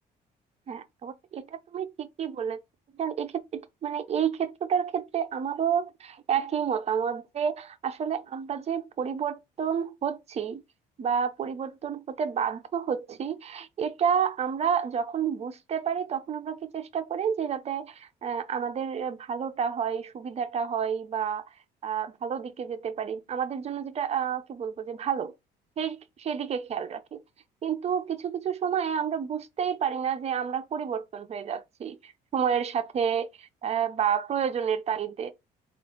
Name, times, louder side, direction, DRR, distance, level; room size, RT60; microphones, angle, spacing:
voice 1, 0.7-2.6 3.0-10.6 11.0-21.4 21.8-25.3 25.8-27.2 27.6-35.3, right 7 dB, 40° right, 0.6 m, -30 dB
3.7 x 2.5 x 3.6 m
cardioid pair, 110°, 17 cm